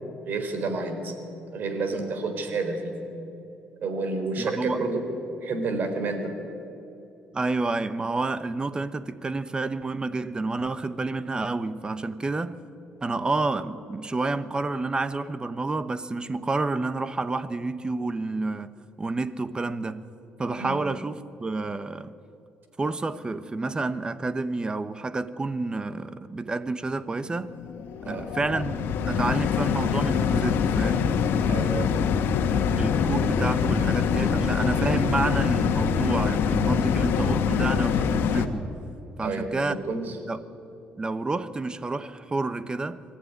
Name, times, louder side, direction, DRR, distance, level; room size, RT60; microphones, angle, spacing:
voice 1, 0.2-1.1 1.5-3.0 3.8-5.0 5.4-6.3 20.6-20.8 28.0-28.3 31.5-31.9 34.3-34.6 39.2-40.2, right 3 dB, 55° right, 4.1 m, -30 dB
voice 2, 4.4-4.8 7.3-12.6 13.0-20.1 20.4-22.2 22.8-27.5 28.1-31.1 32.7-38.7 39.2-39.8 40.3-40.4 41.0-43.0, right 3 dB, 25° right, 1.1 m, -29 dB
exhaust fan kitchen stove turn on turn off long, 27.2-38.5, left 7 dB, 75° left, 1.5 m, -24 dB
24.0 x 14.5 x 9.7 m
cardioid pair, 95°, 4 cm